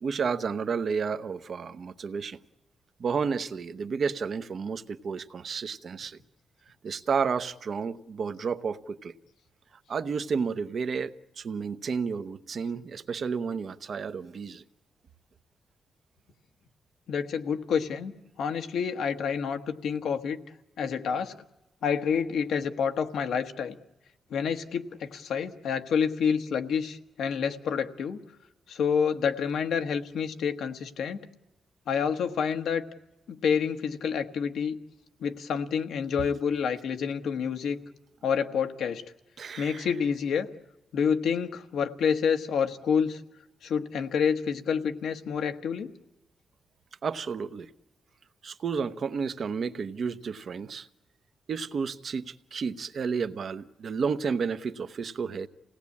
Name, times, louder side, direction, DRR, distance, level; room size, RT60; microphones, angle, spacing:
voice 1, 0.0-2.4 3.0-6.2 6.8-9.1 9.9-14.6 39.4-39.9 47.0-47.7 48.4-50.9 51.5-55.5, right 5 dB, 50° right, 11 dB, 0.8 m, -31 dB
voice 2, 17.1-18.1 18.4-20.4 20.8-21.3 21.8-23.7 24.3-28.2 28.7-31.2 31.9-32.8 33.3-34.8 35.2-37.8 38.2-39.0 39.6-40.5 40.9-43.2 43.6-45.9, left 6 dB, 75° left, 7 dB, 1.2 m, -28 dB
28.5 x 18.0 x 8.4 m, 1.0 s
wide cardioid pair, 140°, 0 cm